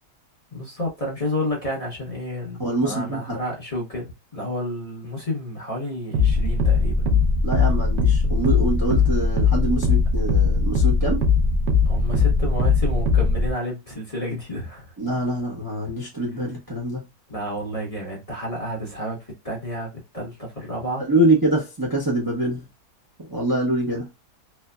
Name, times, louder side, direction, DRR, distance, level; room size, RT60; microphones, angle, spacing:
voice 1, 0.5-7.1 11.9-14.9 17.3-21.1 23.9-24.0, left 1 dB, 30° left, 0.7 m, -30 dB
voice 2, 2.6-3.4 7.4-11.2 15.0-17.0 21.1-22.7 23.2-24.1, right 1 dB, 35° right, 0.3 m, -24 dB
sound 1, 6.1-13.5, left 4 dB, 80° right, 0.6 m, -20 dB
3.3 x 2.0 x 2.2 m
omnidirectional pair, 1.8 m